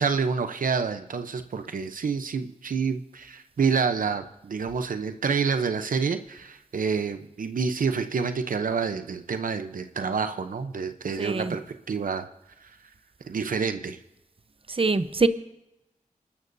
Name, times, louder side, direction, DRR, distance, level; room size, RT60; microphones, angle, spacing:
voice 1, 0.0-11.6 11.9-12.3 13.3-14.0, right 5 dB, 90° right, 0.8 m, -28 dB
voice 2, 11.2-11.5 14.8-15.3, right 3 dB, 45° right, 0.8 m, -23 dB
29.0 x 13.0 x 2.7 m
cardioid pair, 50°, 14 cm